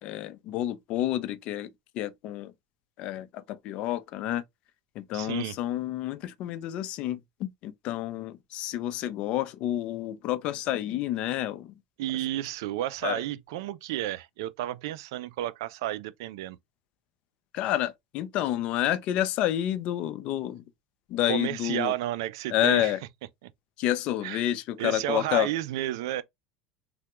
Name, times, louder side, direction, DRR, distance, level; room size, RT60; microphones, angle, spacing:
voice 1, 0.0-2.5 3.0-4.4 5.0-11.7 13.0-13.2 17.5-20.6 21.1-21.9 22.5-23.0 23.8-25.5, left 13 dB, 55° left, 0.4 m, -29 dB
voice 2, 5.1-5.6 12.0-16.6 21.3-22.9 23.4-23.5 24.2-24.4 24.8-26.2, right 14 dB, 80° right, 0.3 m, -32 dB
3.3 x 2.1 x 2.9 m
supercardioid pair, 125°, 2 cm